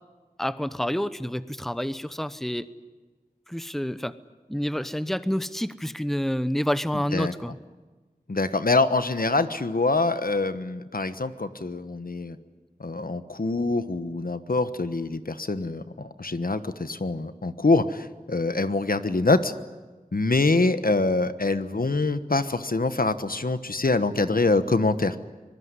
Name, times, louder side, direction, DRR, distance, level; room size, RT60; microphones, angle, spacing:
voice 1, 0.4-2.7 3.5-4.2 4.5-7.6, equal, ahead, 14 dB, 0.9 m, -28 dB
voice 2, 8.3-12.4 12.8-19.5 20.1-25.2, left 3 dB, 70° left, 11 dB, 1.2 m, -25 dB
25.0 x 20.0 x 9.8 m, 1.3 s
wide cardioid pair, 50°, 15 cm